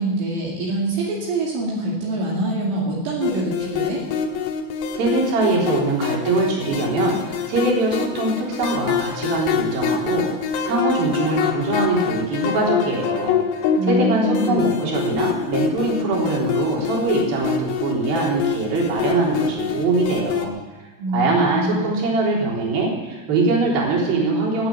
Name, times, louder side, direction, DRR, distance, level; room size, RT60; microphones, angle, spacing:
voice 1, 0.0-4.0 13.8-14.7 21.0-21.9, right 2 dB, 70° right, -4 dB, 4.8 m, -25 dB
sound 1, 3.2-20.5, left 7 dB, 80° left, 4.0 m, -25 dB
voice 2, 4.9-10.3 10.6-13.4 13.8-20.5 21.1-24.7, right 3 dB, 50° right, -3 dB, 5.1 m, -22 dB
19.5 x 9.0 x 7.3 m, 1.3 s
omnidirectional pair, 6.0 m